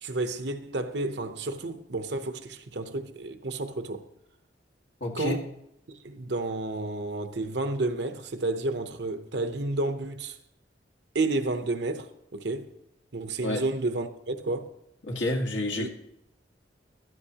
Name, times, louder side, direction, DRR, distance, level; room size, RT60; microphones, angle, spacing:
voice 1, 0.0-4.0 5.1-5.4 5.9-10.4 11.1-12.6 13.1-14.7 15.8-15.9, right 2 dB, 65° right, 0.9 m, -31 dB
voice 2, 5.0-5.4 13.4-13.6 15.0-15.9, left 1 dB, 85° left, 2.0 m, -29 dB
14.5 x 12.5 x 2.9 m
head